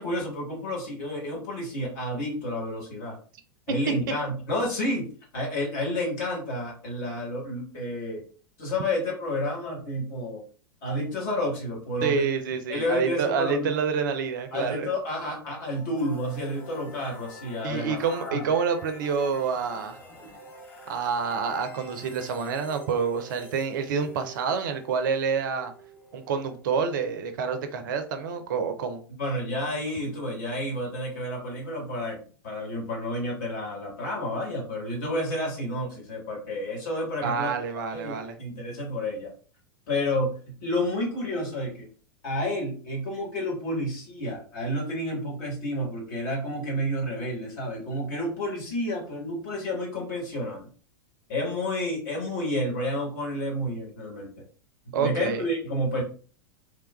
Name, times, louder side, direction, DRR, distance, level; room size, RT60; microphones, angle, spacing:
voice 1, 0.0-3.2 3.7-8.2 8.6-10.4 10.8-12.3 12.7-13.7 14.5-18.5 29.2-37.5 37.9-39.3 39.9-41.9 42.2-50.7 51.3-54.3 55.0-56.0, left 1 dB, 50° left, -2 dB, 1.3 m, -30 dB
voice 2, 12.0-14.9 17.6-20.0 20.9-25.7 26.1-29.0 37.2-38.4 54.9-55.4, right 6 dB, 55° right, 8 dB, 0.4 m, -28 dB
sound 1, 15.7-27.5, right 1 dB, 15° left, 0.7 m, -48 dB
3.1 x 2.2 x 2.2 m, 0.41 s
figure-of-eight pair, 90°, 13 cm